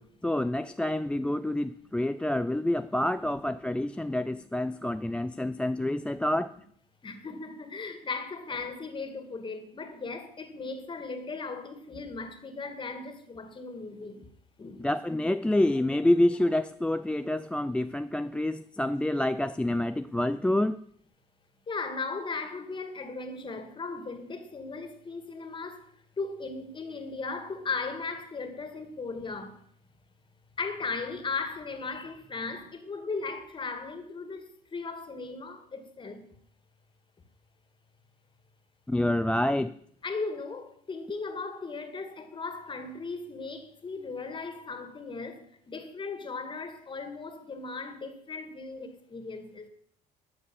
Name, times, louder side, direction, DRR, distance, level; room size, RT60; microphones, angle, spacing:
voice 1, 0.0-6.5 14.8-20.8 38.9-39.7, left 1 dB, 5° left, 0.4 m, -27 dB
voice 2, 7.0-14.3 14.6-14.9 21.7-25.9 26.2-29.6 30.6-36.3 40.0-49.7, left 4 dB, 30° left, 2.2 m, -37 dB
12.5 x 7.2 x 8.5 m
cardioid pair, 110°, 17 cm